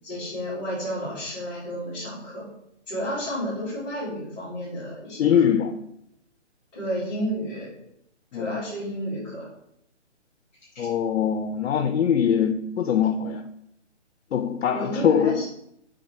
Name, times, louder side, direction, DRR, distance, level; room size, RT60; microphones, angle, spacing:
voice 1, 0.0-2.5 2.9-5.4 6.7-7.7 8.3-9.5 10.7-10.9 14.7-15.4, equal, 25° left, -13 dB, 2.0 m, -31 dB
voice 2, 5.2-5.7 8.3-8.6 10.8-13.4 14.3-15.4, left 8 dB, 90° left, 8 dB, 0.5 m, -22 dB
5.8 x 3.4 x 4.9 m, 0.77 s
hypercardioid pair, 170°, 36 cm